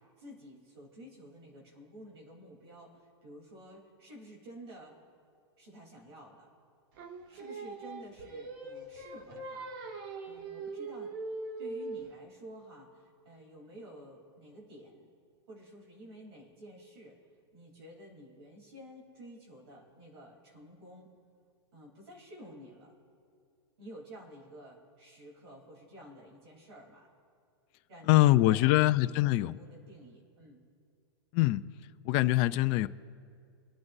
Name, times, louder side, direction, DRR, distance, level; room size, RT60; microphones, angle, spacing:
voice 1, 0.0-5.0 5.6-6.5 7.3-9.7 10.3-11.1 11.6-15.1 15.5-17.2 17.5-21.1 21.7-22.9 23.8-27.1 27.9-29.2 29.4-30.6, equal, 65° right, -2 dB, 3.5 m, -51 dB
Singing, 7.0-12.2, right 3 dB, 50° right, 1.5 m, -41 dB
voice 2, 28.1-29.6 31.3-31.6 32.0-32.9, left 17 dB, 40° left, 11 dB, 0.4 m, -24 dB
25.5 x 9.4 x 2.7 m, 2.3 s
hypercardioid pair, 130°, 14 cm